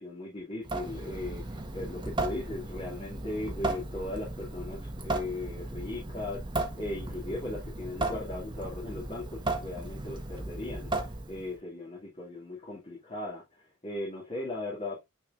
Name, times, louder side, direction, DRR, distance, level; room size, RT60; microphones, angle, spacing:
voice 1, 0.0-15.0, left 2 dB, 30° left, 2.3 m, -38 dB
Water tap faucet / Sink (filling or washing) / Drip, 0.6-11.6, right 2 dB, 20° right, 1.3 m, -36 dB
8.8 x 4.7 x 2.5 m
head